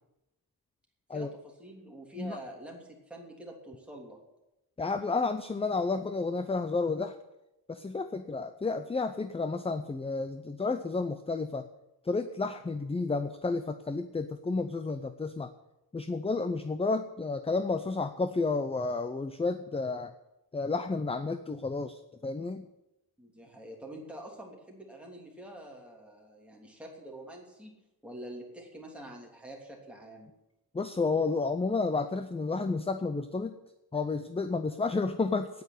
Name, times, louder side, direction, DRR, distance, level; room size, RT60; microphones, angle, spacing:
voice 1, 1.1-4.2 23.2-27.8 28.0-30.3, right 1 dB, 5° right, -1 dB, 3.1 m, -46 dB
voice 2, 4.8-7.1 7.7-11.7 12.0-15.5 15.9-20.1 20.5-22.7 30.7-33.6 33.9-35.6, left 3 dB, 15° left, 10 dB, 0.5 m, -31 dB
9.5 x 9.4 x 9.9 m, 0.92 s
wide cardioid pair, 150°, 39 cm